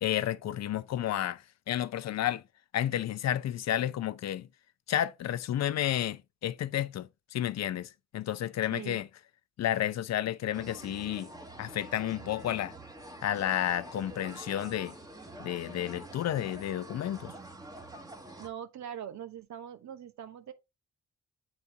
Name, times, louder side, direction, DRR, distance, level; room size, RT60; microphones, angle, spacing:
voice 1, 0.0-2.4 2.7-4.5 4.9-9.1 9.6-11.3 11.6-12.7 13.2-14.9 15.4-17.3, left 11 dB, 60° left, 0.6 m, -31 dB
sound 1, 10.5-18.5, right 2 dB, 10° right, 1.2 m, -47 dB
voice 2, 18.4-20.5, right 9 dB, 70° right, 1.2 m, -42 dB
8.1 x 4.2 x 3.5 m
cardioid pair, 90°, 30 cm